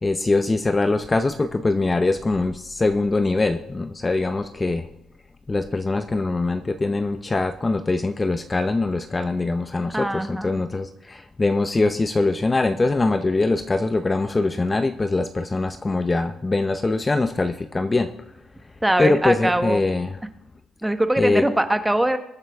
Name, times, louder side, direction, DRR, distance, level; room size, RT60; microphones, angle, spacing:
voice 1, 0.0-4.9 5.5-18.1 19.0-20.2 21.2-21.4, left 3 dB, 25° left, 9 dB, 0.7 m, -22 dB
voice 2, 9.9-10.6 18.8-19.8 20.8-22.2, right 1 dB, 10° right, 8 dB, 1.2 m, -22 dB
22.5 x 8.9 x 3.5 m, 0.85 s
cardioid pair, 90°, 0 cm